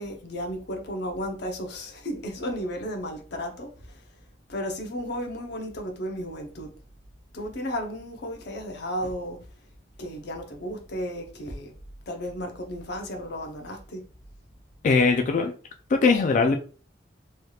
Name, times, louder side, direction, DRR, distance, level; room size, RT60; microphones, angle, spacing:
voice 1, 0.0-3.7 4.5-6.7 7.3-9.4 10.0-11.7 12.1-14.0, equal, 65° left, 0.7 m, -33 dB
voice 2, 14.8-15.5 15.9-16.6, left 4 dB, 45° left, 0.3 m, -20 dB
3.2 x 2.8 x 2.3 m
head